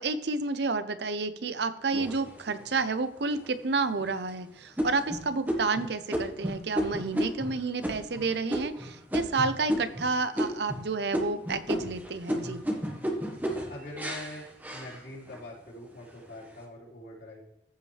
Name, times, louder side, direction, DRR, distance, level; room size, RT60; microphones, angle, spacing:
voice 1, 0.0-12.6, right 3 dB, 65° right, 12 dB, 0.7 m, -30 dB
sound 1, 1.9-2.8 3.4-3.5 4.0-4.3 4.8-10.1 10.3-10.8 11.1-15.4 15.9-16.5, equal, 10° right, 1.4 m, -33 dB
voice 2, 13.7-17.5, left 1 dB, 60° left, -6 dB, 3.9 m, -44 dB
14.5 x 5.4 x 3.3 m, 0.84 s
head